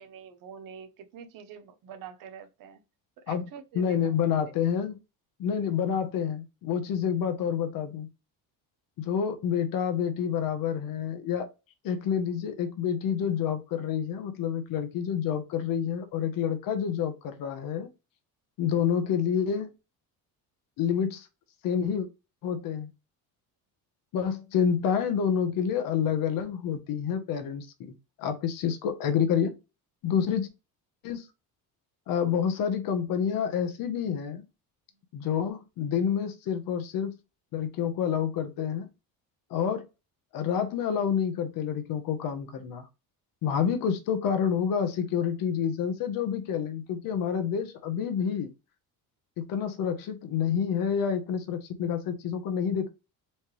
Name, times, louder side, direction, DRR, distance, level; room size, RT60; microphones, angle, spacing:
voice 1, 0.0-2.8 3.3-4.1, right 7 dB, 60° right, 0.8 m, -45 dB
voice 2, 3.7-5.0 5.4-8.1 9.0-11.5 11.8-17.9 18.6-19.7 20.8-21.3 21.6-22.1 22.4-22.9 24.1-29.5 30.0-30.5 31.0-31.2 32.1-34.4 35.1-37.2 37.5-38.9 39.5-39.8 40.3-42.9 43.4-48.5 49.4-52.9, left 8 dB, 60° left, 1.0 m, -28 dB
4.3 x 3.2 x 3.1 m
cardioid pair, 165°, 37 cm